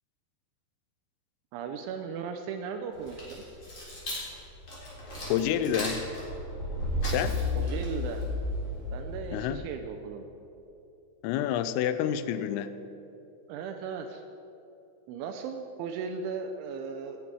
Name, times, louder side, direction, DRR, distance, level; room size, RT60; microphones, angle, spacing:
voice 1, 1.5-3.4 7.6-8.2 8.9-10.2 13.5-14.2 15.1-17.2, right 6 dB, 85° right, 5 dB, 2.8 m, -37 dB
sound 1, 2.9-9.5, left 1 dB, 30° left, 3.6 m, -33 dB
voice 2, 5.3-6.0 7.0-7.4 9.3-9.7 11.2-12.7, left 10 dB, 85° left, 12 dB, 3.2 m, -28 dB
18.0 x 9.8 x 4.7 m, 3.0 s
omnidirectional pair, 5.9 m